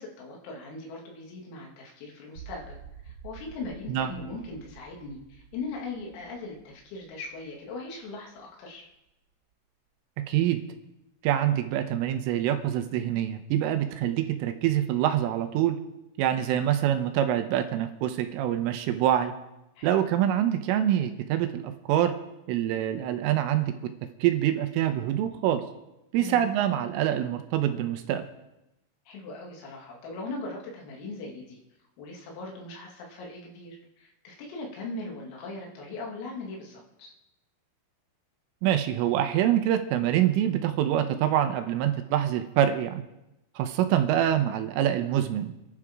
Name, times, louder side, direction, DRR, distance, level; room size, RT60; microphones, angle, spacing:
voice 1, 0.0-2.8 3.0-8.9 19.8-20.0 26.2-26.4 29.1-31.6 32.0-37.1, left 3 dB, 85° left, -1 dB, 5.3 m, -39 dB
sound 1, 2.4-8.4, right 7 dB, 55° right, 3.4 m, -49 dB
voice 2, 10.3-10.6 11.2-15.8 16.2-19.3 19.8-22.1 22.5-23.7 24.2-25.6 26.1-28.3 38.6-43.0 43.6-45.5, right 11 dB, 85° right, 7 dB, 3.5 m, -25 dB
27.0 x 11.0 x 3.7 m, 0.91 s
omnidirectional pair, 5.8 m